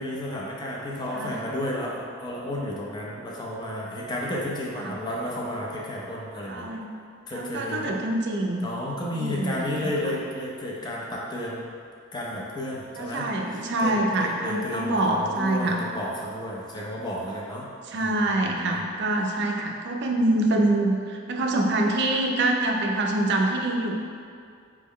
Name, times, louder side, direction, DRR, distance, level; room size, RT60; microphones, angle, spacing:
voice 1, 0.0-6.7 7.3-7.9 8.6-11.7 12.1-17.7 17.9-18.2 18.4-18.9, left 1 dB, 20° left, -4 dB, 0.5 m, -32 dB
voice 2, 6.5-6.9 7.3-8.6 9.1-9.9 13.0-15.8 17.9-23.9, right 2 dB, 55° right, 1 dB, 0.4 m, -25 dB
4.5 x 2.1 x 3.6 m, 2.3 s
head